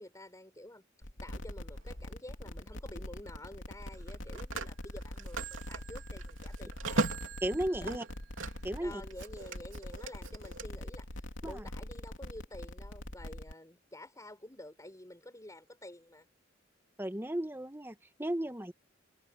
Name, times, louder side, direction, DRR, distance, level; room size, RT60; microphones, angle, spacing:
voice 1, 0.0-7.1 7.7-7.8 8.8-16.3, left 1 dB, 15° left, 6.4 m, -50 dB
sound 1, 1.0-13.5, left 1 dB, 75° left, 3.3 m, -43 dB
Telephone, 1.8-2.0 3.9-8.8 9.1-10.7, right 3 dB, 85° right, 3.0 m, -38 dB
voice 2, 7.4-8.0 8.6-9.0 11.4-11.6 17.0-18.7, right 1 dB, 10° right, 1.5 m, -35 dB
head